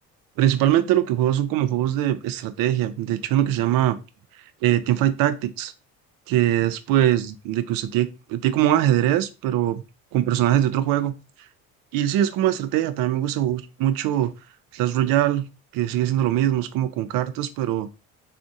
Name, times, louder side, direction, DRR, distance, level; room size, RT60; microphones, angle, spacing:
voice 1, 0.4-4.0 4.6-5.7 6.3-9.8 10.1-11.1 11.9-14.3 14.7-15.5 15.7-17.9, right 12 dB, 70° right, 12 dB, 0.5 m, -22 dB
3.4 x 2.1 x 2.6 m, 0.29 s
supercardioid pair, 85°, 36 cm